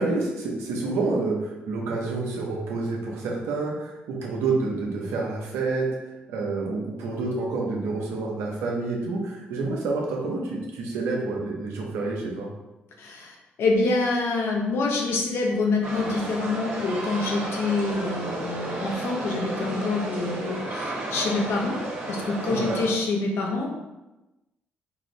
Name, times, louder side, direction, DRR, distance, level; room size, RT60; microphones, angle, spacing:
voice 1, 0.0-5.9 6.3-12.5 22.5-22.8, right 3 dB, 85° right, -1 dB, 0.9 m, -28 dB
voice 2, 13.0-21.8 22.1-23.7, left 3 dB, 70° left, 1 dB, 0.8 m, -26 dB
sound 1, 15.8-22.9, right 2 dB, 60° right, 1.3 m, -33 dB
4.6 x 2.6 x 3.2 m, 1.0 s
supercardioid pair, 60°, 4 cm